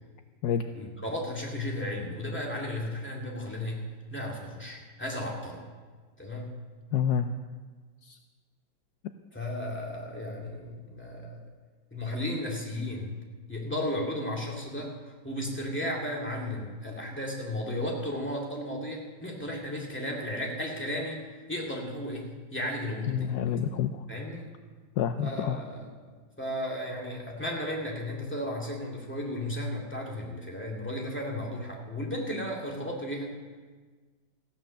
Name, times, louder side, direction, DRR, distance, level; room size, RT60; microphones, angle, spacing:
voice 1, 0.7-3.8 4.1-5.6 6.2-6.5 9.3-11.4 11.9-13.2 13.5-14.9 15.2-21.2 21.5-23.3 24.1-24.5 25.2-25.9 26.4-33.3, left 1 dB, 5° left, -2 dB, 2.1 m, -34 dB
voice 2, 6.9-7.3 8.1-8.2 23.1-24.0 25.0-25.6, left 8 dB, 75° left, 8 dB, 0.9 m, -28 dB
15.0 x 9.1 x 6.5 m, 1.4 s
omnidirectional pair, 2.2 m